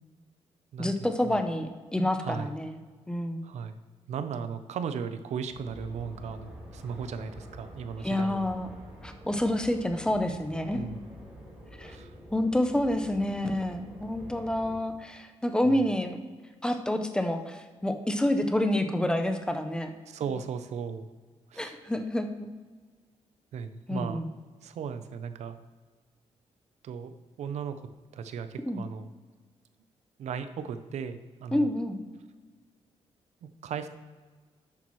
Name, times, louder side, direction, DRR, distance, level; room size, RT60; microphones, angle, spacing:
voice 1, 0.8-2.8 3.1-3.5 8.0-8.7 9.0-11.0 11.8-11.9 12.3-16.2 16.6-19.9 21.6-22.5 23.9-24.3 28.6-28.8 31.5-32.0, left 1 dB, 5° left, 7 dB, 0.6 m, -28 dB
voice 2, 2.2-2.5 3.4-3.8 4.1-8.5 10.7-11.0 11.8-12.1 15.7-15.9 20.1-21.1 21.5-21.8 23.5-24.2 24.6-25.6 26.8-29.1 30.2-31.7 33.4-33.9, right 6 dB, 80° right, 10 dB, 0.6 m, -36 dB
sound 1, 5.5-14.8, equal, 10° right, 3.0 m, -47 dB
11.5 x 8.4 x 3.1 m, 1.4 s
wide cardioid pair, 150°, 11 cm